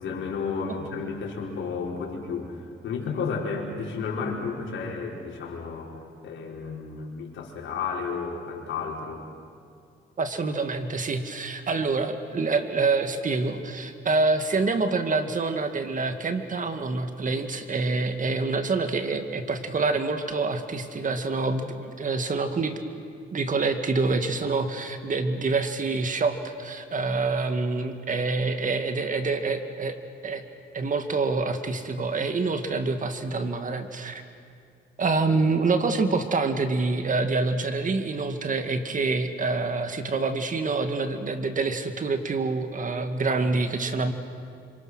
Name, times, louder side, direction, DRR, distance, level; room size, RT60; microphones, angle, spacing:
voice 1, 0.0-5.9 6.2-9.2 35.3-35.4, left 5 dB, 75° left, -1 dB, 4.9 m, -32 dB
voice 2, 10.2-22.8 23.3-30.0 30.2-30.4 30.7-34.2 35.0-44.1, right 3 dB, 40° right, 7 dB, 2.1 m, -26 dB
28.0 x 26.5 x 6.4 m, 2.4 s
cardioid pair, 90°, 20 cm